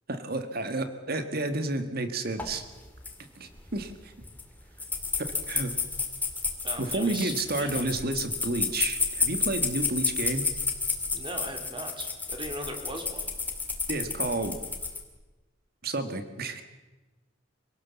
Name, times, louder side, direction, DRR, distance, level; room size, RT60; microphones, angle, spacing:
voice 1, 0.1-2.6 3.4-4.1 5.2-5.7 6.8-10.5 13.9-14.6 15.8-16.6, right 2 dB, 50° right, 8 dB, 1.9 m, -31 dB
sound 1, 2.4-2.5 2.8-3.1 3.6-3.8 4.3-4.4 4.8-15.0, left 4 dB, 10° left, 2.5 m, -31 dB
voice 2, 6.6-7.8 11.1-13.3, right 1 dB, 25° right, 4 dB, 3.3 m, -38 dB
26.0 x 18.0 x 7.2 m, 1.2 s
head